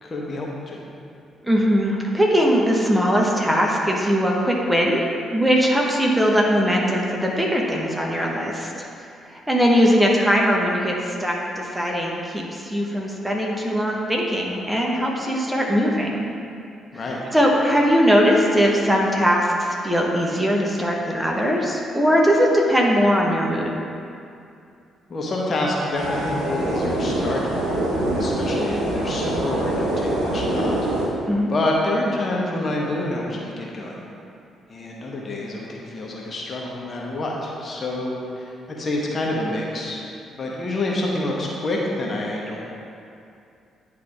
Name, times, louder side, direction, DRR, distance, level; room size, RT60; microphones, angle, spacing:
voice 1, 0.0-0.8 16.9-17.2 25.1-27.9 28.1-31.2 31.5-34.0 34.7-40.0 40.4-42.7, left 1 dB, 40° left, -2 dB, 1.1 m, -27 dB
voice 2, 1.4-5.0 5.3-8.9 9.3-16.3 17.3-23.7 31.3-31.5, equal, 5° right, -2 dB, 1.1 m, -20 dB
sound 1, 25.9-31.1, right 1 dB, 75° right, 1.1 m, -24 dB
10.0 x 3.4 x 3.4 m, 2.5 s
figure-of-eight pair, 45°, 0 cm